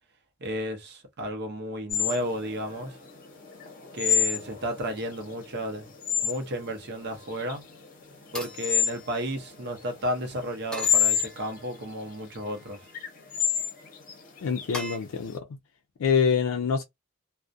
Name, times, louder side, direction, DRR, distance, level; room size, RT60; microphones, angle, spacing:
voice 1, 0.4-3.0 3.9-5.9 6.2-7.6 8.3-12.8, equal, 55° right, 0.7 m, -33 dB
sound 1, 1.9-15.3, left 8 dB, 45° left, 0.7 m, -30 dB
sound 2, 7.0-7.5 8.3-9.7 10.7-11.8 12.3-13.0 14.7-15.0, equal, 5° left, 0.7 m, -42 dB
voice 2, 14.4-15.5 16.0-16.8, left 6 dB, 90° left, 0.4 m, -25 dB
2.3 x 2.1 x 2.5 m
head